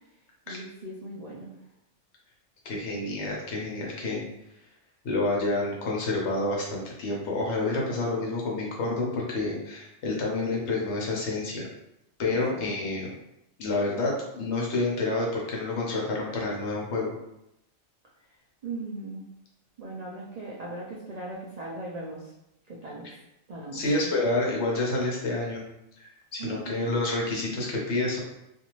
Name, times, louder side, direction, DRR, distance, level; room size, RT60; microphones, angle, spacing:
voice 1, 0.5-1.5 4.1-4.3 12.3-12.6 18.6-19.3 19.8-22.3 22.7-23.1 23.5-24.1 26.4-26.9, right 2 dB, 90° right, -5 dB, 0.3 m, -39 dB
voice 2, 2.6-4.2 5.0-11.7 12.2-13.1 13.6-17.1 23.7-25.6 26.0-28.2, left 2 dB, 65° left, -2 dB, 1.0 m, -28 dB
2.6 x 2.4 x 3.0 m, 0.85 s
omnidirectional pair, 1.3 m